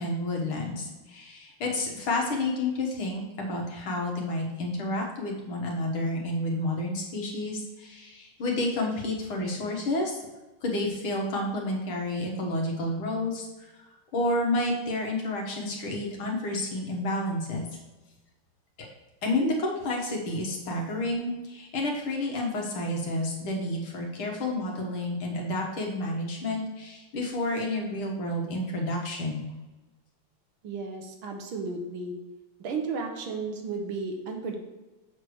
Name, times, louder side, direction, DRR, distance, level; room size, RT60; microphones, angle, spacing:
voice 1, 0.0-10.2 10.6-13.5 14.1-17.7 18.8-18.9 19.2-29.4, left 1 dB, 75° left, -1 dB, 2.2 m, -30 dB
voice 2, 30.6-32.1 32.6-34.6, right 4 dB, 70° right, 3 dB, 1.7 m, -33 dB
7.3 x 3.3 x 6.2 m, 1.1 s
omnidirectional pair, 2.4 m